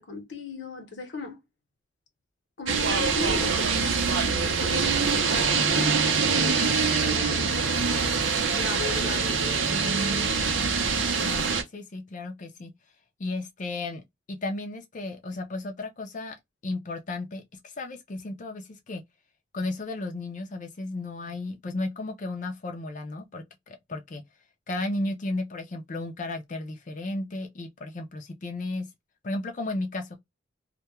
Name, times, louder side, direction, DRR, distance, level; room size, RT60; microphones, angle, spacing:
voice 1, 0.0-1.4 2.6-4.9 5.3-7.6 8.5-10.5, left 4 dB, 75° left, 0.8 m, -38 dB
sound 1, 2.7-11.6, right 5 dB, 85° right, 0.6 m, -24 dB
voice 2, 11.2-12.7 13.2-14.0 14.3-16.4 16.6-19.0 19.5-24.2 24.7-28.9 29.2-30.2, left 2 dB, 40° left, 0.4 m, -34 dB
2.2 x 2.1 x 2.9 m
head